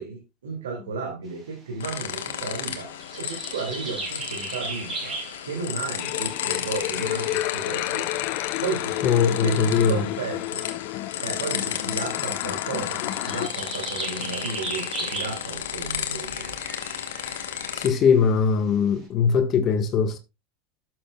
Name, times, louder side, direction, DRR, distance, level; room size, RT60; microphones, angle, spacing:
voice 1, 0.0-8.1 8.6-10.7 11.2-16.6, right 4 dB, 90° right, 2.2 m, -34 dB
sound 1, 1.8-17.9, left 9 dB, 80° left, 1.1 m, -33 dB
sound 2, 3.0-5.5 6.4-8.0 8.6-8.7 9.5-9.6 11.1-11.7 13.1-15.6 16.0-18.4, right 2 dB, 30° right, 4.2 m, -36 dB
sound 3, 6.0-13.5, left 18 dB, 60° left, 0.4 m, -31 dB
voice 2, 9.0-10.0 14.2-14.3 17.7-20.2, left 6 dB, 45° left, 1.3 m, -21 dB
11.5 x 7.7 x 2.2 m
hypercardioid pair, 95°, 0 cm